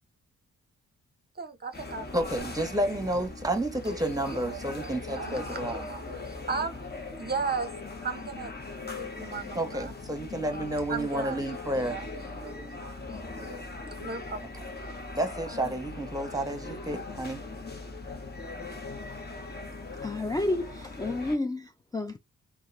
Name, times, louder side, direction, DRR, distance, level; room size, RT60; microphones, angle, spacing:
voice 1, 1.3-2.1 3.1-3.2 3.9-7.7 8.0-8.5 8.8-9.9 10.9-15.2, right 4 dB, 30° right, 0.7 m, -37 dB
sound 1, 1.7-21.4, left 3 dB, 30° left, 1.2 m, -40 dB
voice 2, 2.1-5.9 9.5-12.0 15.2-17.4, right 1 dB, 10° right, 1.1 m, -31 dB
voice 3, 20.0-22.2, left 2 dB, 10° left, 0.4 m, -31 dB
2.9 x 2.5 x 2.5 m
supercardioid pair, 45°, 33 cm